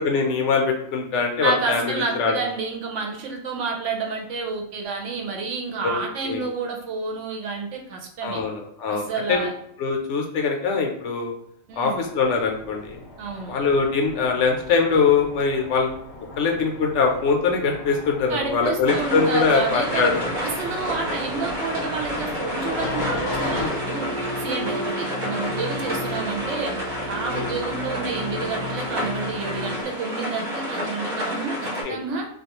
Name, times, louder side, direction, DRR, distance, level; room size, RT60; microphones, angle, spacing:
voice 1, 0.0-2.3 5.8-6.4 8.2-9.4 9.8-11.3 11.8-13.0 13.5-15.9 16.4-20.1 23.5-23.8 25.8-25.9 27.3-27.5 31.8-32.0, left 5 dB, 70° left, 2 dB, 0.8 m, -23 dB
voice 2, 1.4-8.4 8.9-9.5 11.7-12.0 13.2-13.5 18.3-20.1 20.4-24.1 24.4-26.7 27.1-32.3, right 4 dB, 75° right, 1 dB, 0.9 m, -29 dB
sound 1, 12.0-23.7, left 2 dB, 30° left, 0.5 m, -36 dB
sound 2, 18.9-31.8, equal, 45° right, 0.8 m, -30 dB
sound 3, 22.7-29.8, left 1 dB, 90° right, 0.3 m, -34 dB
2.4 x 2.2 x 2.9 m, 0.72 s
omnidirectional pair, 1.3 m